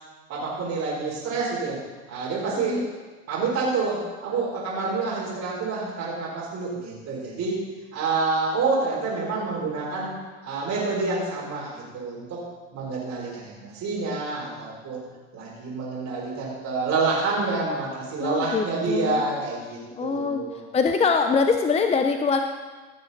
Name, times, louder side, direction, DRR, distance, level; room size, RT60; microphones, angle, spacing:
voice 1, 0.3-1.8 2.1-2.8 3.3-7.5 7.9-10.1 10.4-12.4 12.7-15.0 15.3-20.6, right 3 dB, 45° right, -6 dB, 3.9 m, -28 dB
voice 2, 2.6-2.9 18.2-19.2 19.9-20.5 20.7-22.4, left 5 dB, 15° left, 6 dB, 0.6 m, -23 dB
16.0 x 7.0 x 4.0 m, 1.3 s
hypercardioid pair, 90°, 37 cm